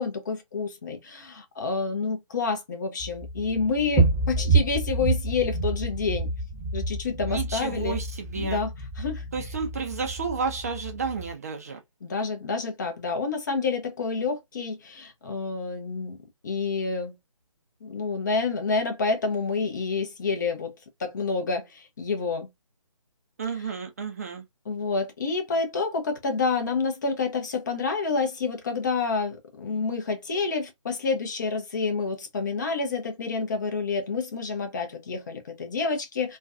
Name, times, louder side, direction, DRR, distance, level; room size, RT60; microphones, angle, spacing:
voice 1, 0.0-6.3 6.7-8.0 8.4-8.7 9.0-9.3 12.0-16.2 16.4-17.2 17.8-22.5 24.7-36.4, left 4 dB, 35° left, 0.6 m, -28 dB
sound 1, 3.0-11.3, right 3 dB, ahead, 0.8 m, -28 dB
voice 2, 7.3-8.6 9.3-11.8 23.4-24.4, right 5 dB, 30° right, 0.4 m, -31 dB
2.4 x 2.2 x 2.4 m
figure-of-eight pair, 145°, 18 cm